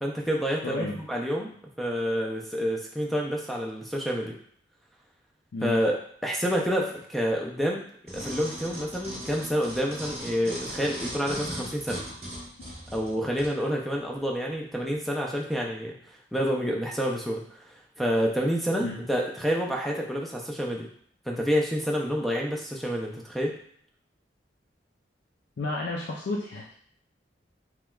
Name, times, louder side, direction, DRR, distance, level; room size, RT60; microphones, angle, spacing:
voice 1, 0.0-1.5 1.8-4.3 5.6-6.0 6.2-7.8 8.1-12.0 12.9-15.9 16.3-17.4 18.0-20.9 21.3-23.5, equal, ahead, 0 dB, 0.4 m, -28 dB
voice 2, 0.6-1.0 5.5-5.8 18.8-19.0 25.6-26.7, left 2 dB, 80° left, -3 dB, 0.5 m, -32 dB
sound 1, 8.1-13.6 14.1-14.2, equal, 35° right, 1.1 m, -38 dB
3.3 x 3.0 x 2.3 m, 0.63 s
head